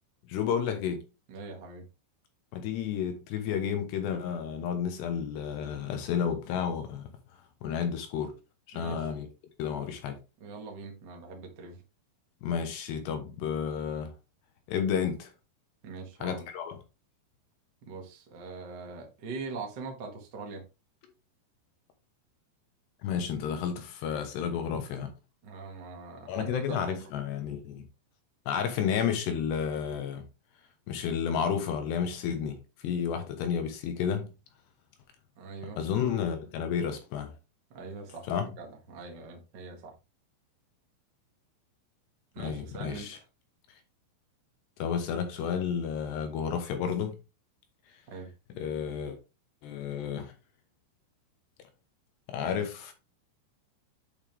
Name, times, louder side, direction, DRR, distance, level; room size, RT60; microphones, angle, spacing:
voice 1, 0.3-1.0 2.5-7.1 7.6-8.3 8.7-9.3 9.6-10.2 12.4-14.1 14.7-15.3 16.2-16.8 23.0-25.1 26.3-27.8 28.5-30.2 30.9-32.6 32.8-34.3 35.8-37.3 38.3-38.5 42.4-43.2 44.8-47.2 48.6-49.2 49.6-50.3 52.3-52.9, left 7 dB, 75° left, 3.0 m, -31 dB
voice 2, 1.3-1.8 8.7-9.1 10.4-11.8 15.8-16.5 17.9-20.6 25.4-27.1 35.3-35.8 37.7-38.3 38.6-39.9 42.3-43.2 48.1-48.3, right 4 dB, 80° right, 0.9 m, -42 dB
8.5 x 5.5 x 3.5 m
omnidirectional pair, 5.4 m